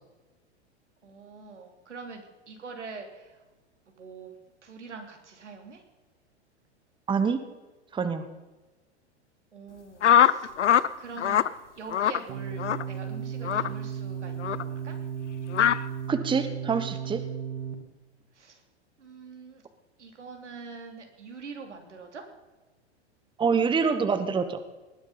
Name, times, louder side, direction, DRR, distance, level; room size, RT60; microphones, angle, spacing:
voice 1, 1.0-3.3 4.0-4.3 4.6-5.8 9.5-10.5 11.0-11.4 11.7-14.9 18.4-18.6 19.0-19.6 20.0-22.2, right 4 dB, 90° right, 3 dB, 3.2 m, -44 dB
voice 2, 7.1-7.4 7.9-8.2 16.1-17.2 23.4-24.6, right 5 dB, 15° right, 10 dB, 1.1 m, -25 dB
sound 1, 10.0-10.9 11.2-11.5 11.9-12.2 12.6-12.8 13.4-13.7 14.4-14.6 15.5-15.8, left 10 dB, 85° left, 0.7 m, -21 dB
sound 2, 12.3-17.7, right 8 dB, 50° right, 2.7 m, -35 dB
19.5 x 10.5 x 5.6 m, 1.2 s
hypercardioid pair, 105°, 34 cm